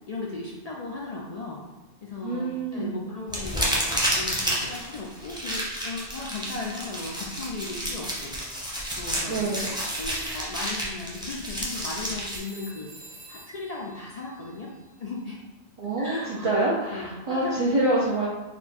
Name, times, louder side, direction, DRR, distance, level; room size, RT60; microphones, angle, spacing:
voice 1, 0.1-1.6 2.0-8.3 9.0-12.9 13.3-14.7 15.0-15.4 16.0-16.6 16.9-17.7, left 3 dB, 55° left, -2 dB, 0.4 m, -36 dB
voice 2, 2.2-3.0 9.3-9.7 15.8-18.3, right 2 dB, 40° right, -5 dB, 0.5 m, -26 dB
sound 1, 3.3-12.4, equal, 5° right, 0.7 m, -30 dB
sound 2, 9.7-15.2, right 1 dB, 70° right, 1.2 m, -49 dB
4.3 x 2.3 x 4.2 m, 1.1 s
omnidirectional pair, 1.1 m